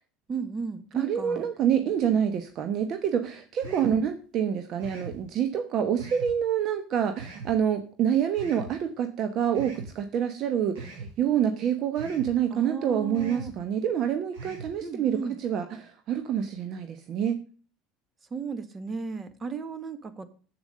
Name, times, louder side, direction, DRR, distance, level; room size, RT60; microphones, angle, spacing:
voice 1, 0.3-1.5 2.0-2.2 3.6-4.0 12.5-13.5 14.8-15.4 18.3-20.2, right 5 dB, 30° right, 12 dB, 1.4 m, -35 dB
voice 2, 1.0-17.4, right 9 dB, 50° right, 8 dB, 1.0 m, -27 dB
sound 1, 3.6-4.0 4.8-5.2 6.0-6.3 7.2-7.5 8.3-8.7 9.5-9.9 10.7-11.1 11.9-12.3 13.1-13.5 14.3-14.7, right 3 dB, 75° right, 5.7 m, -41 dB
8.0 x 7.2 x 6.6 m, 0.40 s
hypercardioid pair, 90°, 0 cm